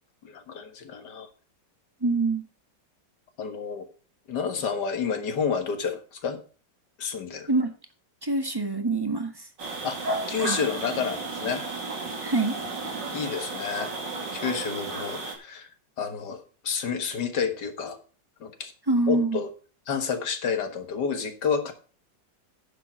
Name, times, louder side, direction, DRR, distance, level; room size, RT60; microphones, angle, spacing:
voice 1, 0.2-1.3 3.4-3.9 4.3-6.4 7.0-7.5 9.8-11.7 13.1-13.9 14.3-15.7 16.0-18.0 18.4-18.7 19.1-19.5 19.9-21.7, left 6 dB, 70° left, 7 dB, 2.1 m, -30 dB
voice 2, 2.0-2.4 7.5-7.7 8.2-9.5 10.4-10.6 12.2-12.6 18.9-19.4, right 3 dB, 15° right, 6 dB, 1.3 m, -25 dB
sound 1, 9.6-15.3, right 3 dB, 80° right, 3.2 m, -33 dB
10.5 x 7.4 x 5.7 m, 0.37 s
omnidirectional pair, 1.9 m